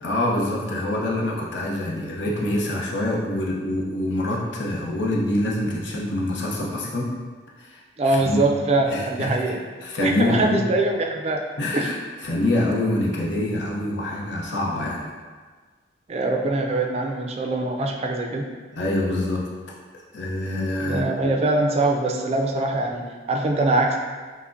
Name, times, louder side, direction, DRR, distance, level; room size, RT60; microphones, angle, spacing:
voice 1, 0.0-7.1 7.7-7.8 8.2-8.4 8.9-9.3 9.8-10.6 11.6-11.9 12.2-15.0 18.7-19.5 20.1-21.0, left 1 dB, 85° left, -3 dB, 0.7 m, -25 dB
voice 2, 8.0-9.6 10.0-11.4 11.7-11.9 16.1-18.5 20.8-24.0, right 2 dB, 35° right, 2 dB, 0.3 m, -23 dB
5.6 x 2.1 x 2.5 m, 1.5 s
head